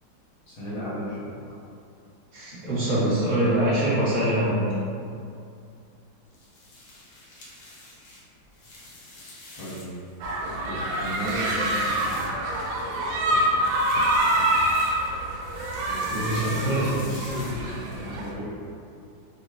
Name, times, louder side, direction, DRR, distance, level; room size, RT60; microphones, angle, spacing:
voice 1, 0.5-1.3 9.5-9.8 10.6-12.2 15.9-18.6, equal, 85° left, -10 dB, 2.1 m, -34 dB
voice 2, 2.3-4.7 16.1-17.3, right 1 dB, 35° right, -9 dB, 1.0 m, -24 dB
sound 1, 6.3-10.1 10.5-12.7 13.5-15.1 15.4-17.9, left 2 dB, 60° left, 1.0 m, -45 dB
sound 2, 10.2-18.3, right 1 dB, 75° right, 1.2 m, -26 dB
4.3 x 2.1 x 3.1 m, 2.4 s
omnidirectional pair, 2.1 m